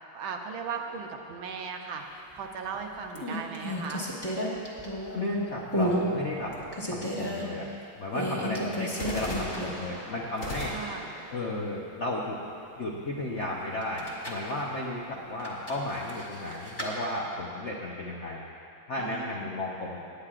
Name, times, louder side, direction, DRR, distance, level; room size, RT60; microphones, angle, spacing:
voice 1, 0.1-4.1 10.7-11.1 19.0-19.4, right 5 dB, 70° right, 3 dB, 1.5 m, -37 dB
sound 1, 0.7-2.1 8.9-12.9, equal, 35° left, 2.9 m, -40 dB
sound 2, 2.4-2.7 3.1-5.3 5.7-6.0 6.4-7.4 8.1-9.9 10.2-10.3 13.8-14.5 15.4-16.9, equal, 15° left, 1.1 m, -32 dB
voice 2, 5.1-6.5 6.8-7.7 8.0-10.7 11.3-12.4 12.8-18.5 18.9-20.0, left 1 dB, 65° left, -3 dB, 0.7 m, -33 dB
18.5 x 10.0 x 2.5 m, 2.6 s
omnidirectional pair, 2.4 m